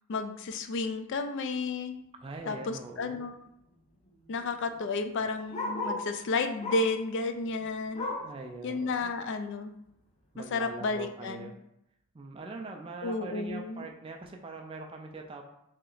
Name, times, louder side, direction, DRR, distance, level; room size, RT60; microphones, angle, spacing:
voice 1, 0.1-2.0 2.5-3.4 4.3-8.1 8.6-9.7 10.4-11.5 13.0-13.9, left 3 dB, 55° left, 8 dB, 0.3 m, -32 dB
voice 2, 2.2-3.3 8.0-9.1 10.3-11.5 12.1-15.4, right 3 dB, 25° right, 2 dB, 0.3 m, -42 dB
Bark, 3.0-3.1 3.3-6.1 6.6-7.0 7.4-8.4 8.8-8.9 9.3-9.4 10.1-10.2, left 2 dB, 30° left, 0.7 m, -37 dB
3.2 x 2.9 x 3.9 m, 0.80 s
head